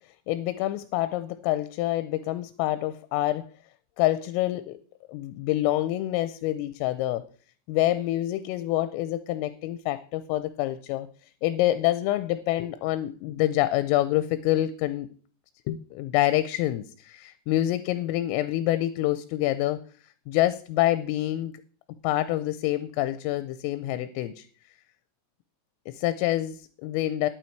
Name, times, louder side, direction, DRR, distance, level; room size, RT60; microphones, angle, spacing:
voice 1, 0.3-3.5 4.0-4.8 5.1-7.2 7.7-11.1 11.4-15.1 15.7-19.8 20.3-21.6 22.0-24.5 25.9-27.3, left 15 dB, 85° left, 13 dB, 3.2 m, -26 dB
11.5 x 8.8 x 4.5 m, 0.43 s
omnidirectional pair, 5.9 m